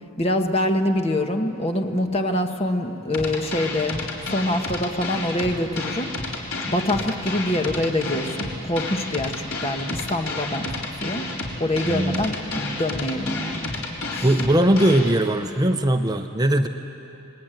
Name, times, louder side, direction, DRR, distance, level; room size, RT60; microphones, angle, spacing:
voice 1, 0.2-4.0 4.3-6.1 6.6-10.7 11.0-11.3 11.6-13.7 14.1-14.3, left 1 dB, 30° left, 5 dB, 1.5 m, -25 dB
sound 1, 3.1-15.1, left 2 dB, 90° left, 4.4 m, -31 dB
voice 2, 11.8-12.2 14.2-16.7, right 1 dB, 20° right, 6 dB, 0.8 m, -20 dB
29.0 x 21.5 x 9.2 m, 2.9 s
head